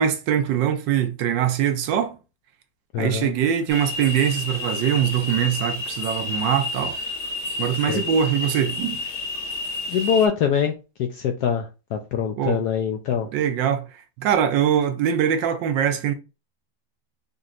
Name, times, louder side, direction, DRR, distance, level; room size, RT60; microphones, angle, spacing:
voice 1, 0.0-2.2 3.0-7.0 7.6-9.0 12.4-12.6 13.3-16.1, right 9 dB, 75° right, 1.2 m, -22 dB
voice 2, 2.9-3.3 7.9-8.0 9.9-13.3, left 7 dB, 70° left, 0.9 m, -24 dB
sound 1, 3.7-10.3, left 2 dB, 40° left, 1.2 m, -30 dB
5.3 x 2.9 x 2.5 m
omnidirectional pair, 2.2 m